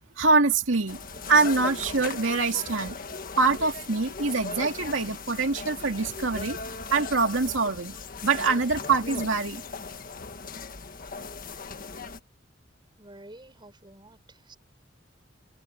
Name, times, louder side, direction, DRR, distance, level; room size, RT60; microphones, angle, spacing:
voice 1, 0.2-1.0 1.3-3.0 3.4-6.6 6.9-7.9 8.2-9.6, right 4 dB, 85° right, 2.3 m, -24 dB
sound 1, 0.9-12.2, left 4 dB, 45° left, 1.7 m, -38 dB
voice 2, 13.0-14.6, right 1 dB, 25° right, 6.4 m, -49 dB
head